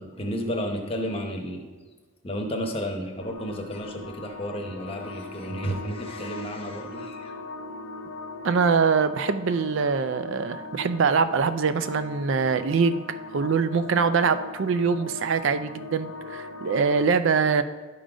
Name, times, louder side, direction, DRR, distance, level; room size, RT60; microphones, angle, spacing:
voice 1, 0.0-1.7 2.2-7.3, equal, 25° left, 2 dB, 0.9 m, -32 dB
sound 1, 3.2-17.0, left 2 dB, 70° left, 0.6 m, -39 dB
voice 2, 8.4-13.0 13.3-17.6, right 5 dB, 60° right, 11 dB, 0.4 m, -23 dB
11.5 x 3.9 x 4.9 m, 1.4 s
head